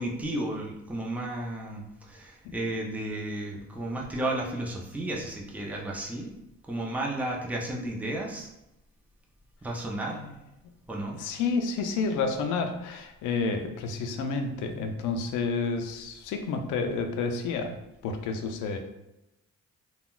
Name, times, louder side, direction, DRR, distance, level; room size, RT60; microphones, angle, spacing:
voice 1, 0.0-6.3 6.7-8.5 9.6-10.2 10.9-11.2, right 1 dB, 5° right, -1 dB, 0.5 m, -33 dB
voice 2, 11.2-18.8, left 4 dB, 90° left, 5 dB, 0.5 m, -30 dB
3.6 x 2.2 x 2.3 m, 0.91 s
cardioid pair, 90°, 30 cm